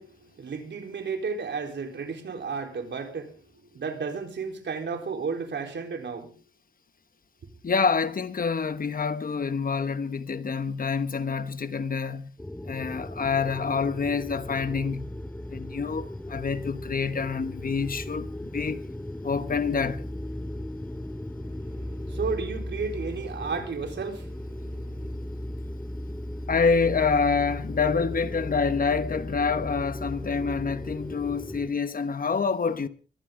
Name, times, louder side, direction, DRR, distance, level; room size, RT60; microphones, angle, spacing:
voice 1, 0.0-6.4 21.5-25.1, right 5 dB, 70° right, 4.1 m, -33 dB
voice 2, 7.6-12.4 12.6-15.1 15.5-18.8 19.2-20.1 26.5-32.9, left 5 dB, 50° left, 1.2 m, -27 dB
sound 1, 12.4-31.7, left 1 dB, 10° left, 2.1 m, -36 dB
23.0 x 15.0 x 3.9 m
cardioid pair, 90°, 19 cm